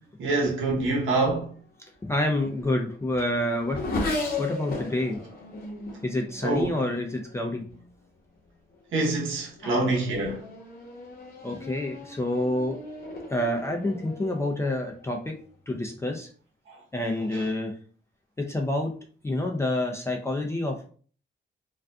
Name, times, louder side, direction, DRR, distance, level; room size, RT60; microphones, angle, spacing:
voice 1, 0.2-1.5 6.4-6.7 8.9-10.4 17.3-17.4, right 2 dB, 85° right, 0.8 m, -26 dB
Race car auto racing / Accelerating revving vroom, 2.0-7.9 8.7-9.1 9.5-15.4, left 2 dB, 50° left, 0.8 m, -37 dB
voice 2, 2.0-3.8 4.4-5.2 6.0-7.7 9.6-9.7 11.4-12.8 13.3-15.3 15.7-16.3 16.9-17.7 18.4-18.9 19.2-20.9, left 1 dB, 15° left, 0.3 m, -28 dB
2.5 x 2.4 x 2.2 m
cardioid pair, 110°, 20 cm